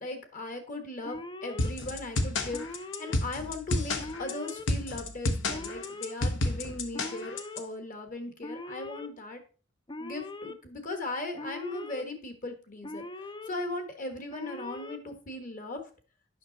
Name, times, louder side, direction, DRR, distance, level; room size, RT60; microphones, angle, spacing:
voice 1, 0.0-9.4 10.0-13.1 13.5-15.8, left 2 dB, 45° left, 7 dB, 1.4 m, -38 dB
Alarm, 1.0-1.7 2.5-3.2 4.0-4.7 5.5-6.1 6.9-7.6 8.4-9.1 9.9-10.5 11.4-12.0 12.8-13.5 14.3-15.0, left 2 dB, 25° left, 0.5 m, -41 dB
sound 1, 1.6-7.6, left 2 dB, 70° left, 1.0 m, -30 dB
8.6 x 6.0 x 4.0 m, 0.37 s
head